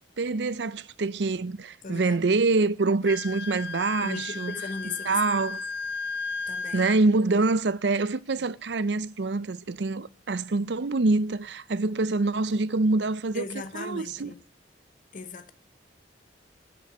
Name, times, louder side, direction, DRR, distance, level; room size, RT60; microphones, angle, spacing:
voice 1, 0.2-4.5 5.1-5.6 6.7-14.3, right 3 dB, 65° right, 0.6 m, -25 dB
voice 2, 1.8-2.2 4.0-5.2 6.5-6.9 8.4-8.5 13.3-14.4 15.1-15.5, left 4 dB, 50° left, 1.0 m, -37 dB
Wind instrument woodwind instrument, 3.0-7.0, left 4 dB, 80° left, 0.7 m, -35 dB
10.0 x 7.9 x 7.5 m
head